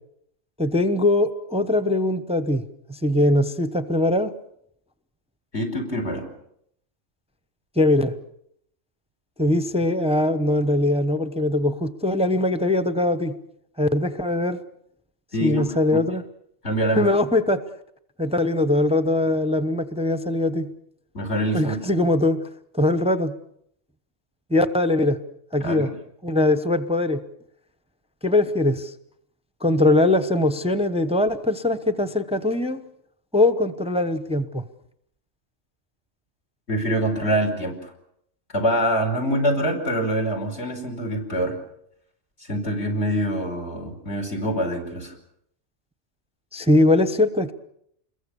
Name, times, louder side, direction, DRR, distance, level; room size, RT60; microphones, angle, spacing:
voice 1, 0.6-2.6 2.9-4.3 7.8-8.1 9.4-13.3 13.8-14.6 15.4-16.2 17.0-17.6 18.2-20.7 21.5-22.4 22.7-23.3 24.5-25.2 25.5-25.9 26.2-27.2 28.2-28.9 29.6-32.8 33.3-34.6 46.5-47.5, left 1 dB, 5° right, 11 dB, 0.9 m, -21 dB
voice 2, 5.5-6.2 15.3-16.0 16.6-17.0 21.1-21.8 25.6-25.9 36.7-37.9 38.5-41.6 42.4-45.1, right 1 dB, 60° left, 0 dB, 5.5 m, -25 dB
27.5 x 22.0 x 7.0 m, 0.73 s
omnidirectional pair, 1.2 m